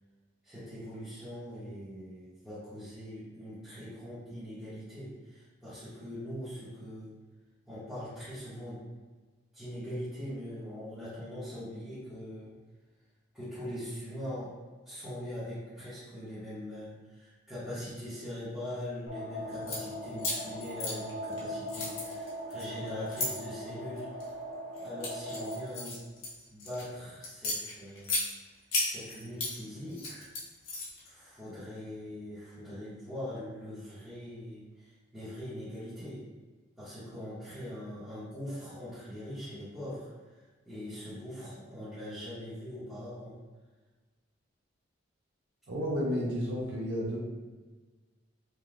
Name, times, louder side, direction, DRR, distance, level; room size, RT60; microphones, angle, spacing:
voice 1, 0.4-7.1 7.7-8.9 9.5-12.5 13.3-14.5 14.8-24.3 24.8-26.0 26.5-28.1 28.8-30.3 31.0-36.2 36.8-40.1 40.7-43.4, equal, ahead, -16 dB, 0.9 m, -42 dB
sound 1, 19.1-25.6, equal, 75° left, 0.5 m, -40 dB
sound 2, 19.5-19.8 20.2-21.4 21.7-23.3 24.0-24.3 24.8-26.8 27.2-28.2 28.7-29.5 29.9-31.1, left 2 dB, 90° left, 0.9 m, -34 dB
voice 2, 45.7-47.2, equal, 65° right, -4 dB, 0.5 m, -31 dB
3.2 x 2.2 x 2.5 m, 1.3 s
head